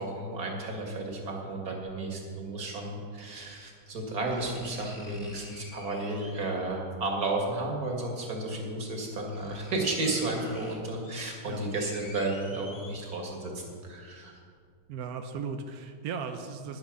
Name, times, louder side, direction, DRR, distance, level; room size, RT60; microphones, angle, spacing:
voice 1, 0.0-14.4, right 2 dB, 45° right, 0 dB, 2.4 m, -33 dB
sound 1, 3.4-3.5 4.3-6.7 8.0-8.1 8.7-8.8 9.1-13.5 13.9-14.0, left 1 dB, 10° left, 2.0 m, -49 dB
voice 2, 14.9-16.8, right 5 dB, 70° right, 6 dB, 0.9 m, -36 dB
10.5 x 10.5 x 6.4 m, 2.1 s
omnidirectional pair, 2.4 m